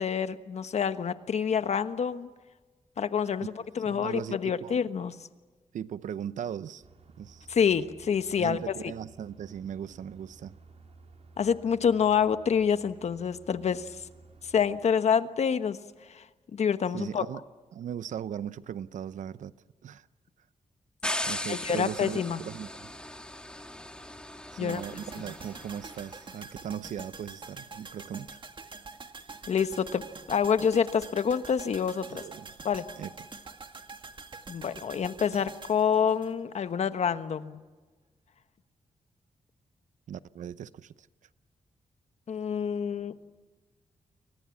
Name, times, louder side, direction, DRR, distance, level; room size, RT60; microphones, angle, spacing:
voice 1, 0.0-2.3 3.0-5.1 7.5-8.6 11.4-13.9 14.5-15.8 16.1-16.2 16.5-17.2 21.5-22.4 24.6-24.8 29.5-32.2 32.6-32.8 34.5-37.6 42.3-43.1, left 7 dB, 60° left, 1.3 m, -27 dB
voice 2, 3.8-4.8 5.7-6.8 7.2-7.5 8.4-10.5 16.9-17.4 17.7-19.5 19.8-20.1 21.3-22.9 24.5-28.4 32.1-32.5 33.0-33.3 40.1-41.1, right 9 dB, 85° right, 0.8 m, -38 dB
sound 1, 6.8-14.7, right 3 dB, 60° right, 4.8 m, -55 dB
sound 2, 21.0-26.2, left 1 dB, 5° left, 2.0 m, -38 dB
sound 3, 24.7-36.9 37.1-37.2, right 4 dB, 40° right, 1.9 m, -46 dB
29.5 x 23.5 x 7.2 m
cardioid pair, 100°, 12 cm